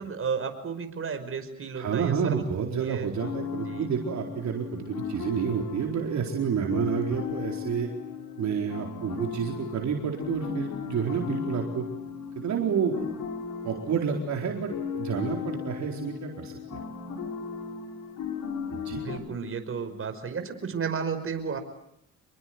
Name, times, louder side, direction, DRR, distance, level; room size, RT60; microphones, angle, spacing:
voice 1, 0.0-2.5 2.8-3.1 3.6-3.9 18.9-21.6, right 6 dB, 45° right, 7 dB, 5.5 m, -33 dB
voice 2, 1.8-7.9 8.4-11.8 12.4-13.1 13.6-16.8 18.7-19.0, right 7 dB, 65° right, 1 dB, 4.3 m, -29 dB
sound 1, 3.2-19.2, left 6 dB, 75° left, 7.1 m, -36 dB
27.0 x 22.5 x 9.5 m, 0.75 s
cardioid pair, 90°, 30 cm